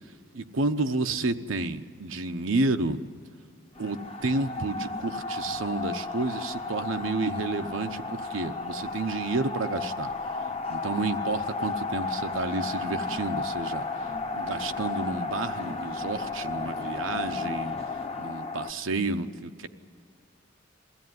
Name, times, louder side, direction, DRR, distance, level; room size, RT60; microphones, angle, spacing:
voice 1, 0.3-3.0 3.8-10.1 10.7-13.8 14.3-17.7 18.2-19.7, right 3 dB, 90° right, 8 dB, 0.9 m, -30 dB
sound 1, 3.8-18.7, left 3 dB, 30° left, 0.8 m, -33 dB
22.0 x 16.0 x 9.4 m, 2.3 s
head